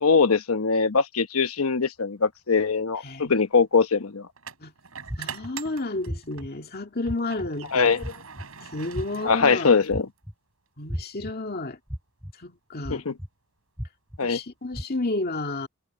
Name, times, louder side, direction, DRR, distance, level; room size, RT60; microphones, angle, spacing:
voice 1, 0.0-4.3 7.7-8.0 9.2-10.1 12.9-13.1 14.2-14.4, left 5 dB, 80° left, 1.0 m, -22 dB
sound 1, 2.3-2.5 4.4-6.5 7.0-10.2, right 7 dB, 80° right, 4.3 m, -42 dB
voice 2, 3.0-3.4 4.6-4.7 5.2-7.9 8.7-9.7 10.8-11.8 12.4-13.0 14.2-15.7, left 2 dB, 45° left, 2.3 m, -31 dB
sound 2, 5.1-5.5 6.1-6.5 7.1-7.5 8.0-8.4 8.9-9.3 9.9-10.3 10.9-11.3 11.9-12.3 12.8-13.3 13.8-14.2 14.7-14.8, equal, 5° right, 3.4 m, -33 dB
head